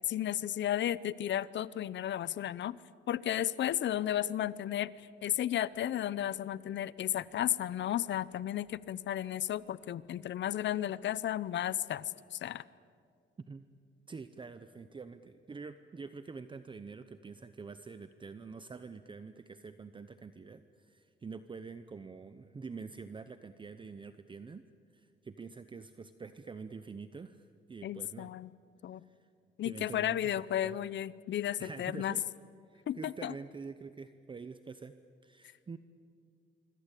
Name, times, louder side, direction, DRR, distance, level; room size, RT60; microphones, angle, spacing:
voice 1, 0.1-2.8 3.1-12.6 27.8-28.5 28.8-29.0 29.6-32.1 32.9-33.3, left 11 dB, 70° left, 19 dB, 0.8 m, -34 dB
voice 2, 14.1-24.6 24.9-28.3 29.0-29.3 29.6-30.2 30.5-30.8 31.4-32.2 32.7-34.9 35.2-35.8, right 4 dB, 25° right, 11 dB, 0.8 m, -46 dB
25.5 x 25.5 x 8.4 m, 2.3 s
cardioid pair, 140°, 19 cm